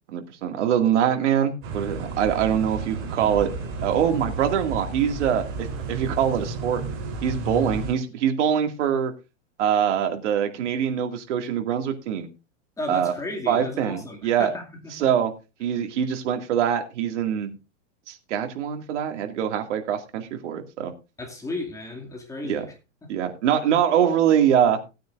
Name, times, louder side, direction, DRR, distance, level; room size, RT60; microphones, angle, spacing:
voice 1, 0.1-3.5 3.8-6.8 7.2-9.1 9.6-12.3 12.9-13.1 13.5-14.5 14.9-15.3 15.6-17.5 18.1-20.9 22.5-22.6 23.1-24.8, right 9 dB, 65° right, 2.3 m, -23 dB
sound 1, 1.6-7.9, right 3 dB, 35° right, 3.7 m, -32 dB
voice 2, 12.8-15.1 21.2-22.7 23.0-23.1, left 2 dB, 10° left, 2.3 m, -34 dB
17.5 x 9.2 x 2.5 m
hypercardioid pair, 140°, 38 cm